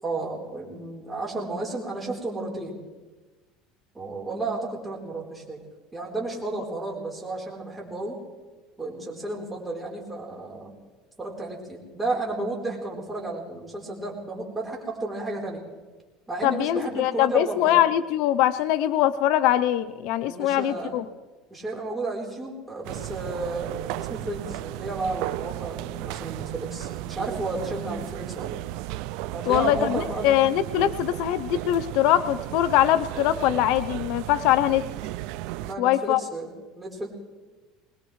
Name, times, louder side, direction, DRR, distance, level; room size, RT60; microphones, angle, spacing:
voice 1, 0.0-2.8 3.9-5.6 5.9-8.2 8.8-10.7 11.2-15.6 16.3-17.8 20.3-21.0 21.5-28.6 29.3-30.5 35.6-37.1, right 2 dB, 10° right, -2 dB, 3.8 m, -32 dB
voice 2, 16.4-21.0 29.5-34.8 35.8-36.2, left 12 dB, 70° left, 12 dB, 0.6 m, -22 dB
sound 1, 22.8-35.8, right 16 dB, 70° right, 0.4 m, -34 dB
22.5 x 20.0 x 3.2 m, 1.2 s
cardioid pair, 140°, 0 cm